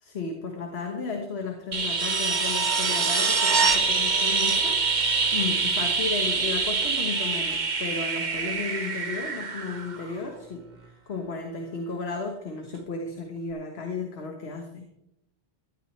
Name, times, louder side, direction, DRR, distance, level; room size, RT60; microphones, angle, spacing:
voice 1, 0.0-4.9 5.3-14.9, left 4 dB, 65° left, 3 dB, 1.6 m, -34 dB
sound 1, 1.7-10.4 12.7-12.8, right 4 dB, 45° right, 1.2 m, -25 dB
15.0 x 12.5 x 3.3 m, 0.79 s
omnidirectional pair, 1.1 m